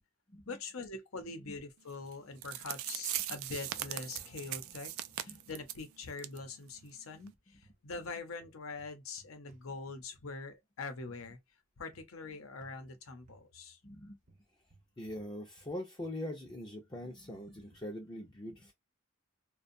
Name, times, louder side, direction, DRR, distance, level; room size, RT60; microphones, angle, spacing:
voice 1, 0.5-11.4 11.8-13.8, left 3 dB, 90° left, 0.7 m, -44 dB
sound 1, 1.2-1.7 2.0-2.4 3.7-4.7 5.9-6.9 7.2-10.2 11.2-11.4 11.9-12.2 12.6-12.8 13.3-13.5 14.3-15.7 16.0-17.9, right 2 dB, 40° right, 0.6 m, -65 dB
sound 2, 2.1-2.2 2.4-5.8 6.2-6.4 6.7-6.8 7.3-7.4, right 13 dB, 85° right, 0.3 m, -39 dB
sound 3, 3.2-6.8, left 2 dB, 50° left, 0.8 m, -61 dB
voice 2, 13.8-14.2 15.0-18.7, left 1 dB, 20° left, 0.4 m, -43 dB
2.6 x 2.1 x 2.5 m
head